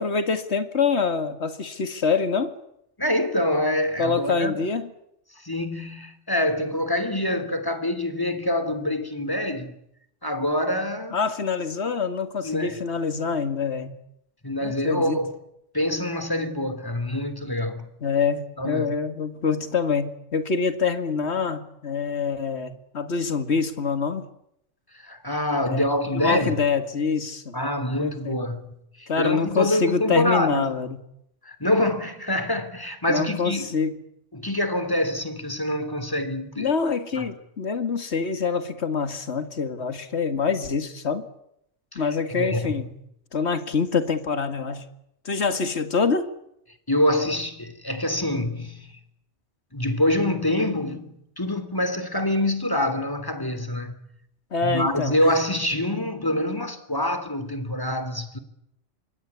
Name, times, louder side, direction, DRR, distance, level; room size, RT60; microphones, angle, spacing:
voice 1, 0.0-2.5 4.0-4.9 11.1-13.9 14.6-15.2 18.0-24.3 25.6-25.8 26.1-27.6 28.0-28.4 29.1-31.0 33.1-34.0 36.6-41.3 42.0-42.9 43.3-44.9 45.2-46.3 54.5-55.2, left 5 dB, 65° left, 2.3 m, -25 dB
voice 2, 3.0-4.7 5.4-9.7 10.2-11.2 12.4-12.8 14.4-15.3 15.7-17.9 18.6-18.9 24.9-26.6 27.5-30.7 31.4-33.7 34.3-36.7 37.2-37.3 41.9-42.0 42.3-42.9 46.9-48.9 49.7-51.1 51.4-54.0 54.6-58.4, left 1 dB, 15° left, 3.3 m, -25 dB
27.0 x 23.0 x 8.4 m
omnidirectional pair, 1.2 m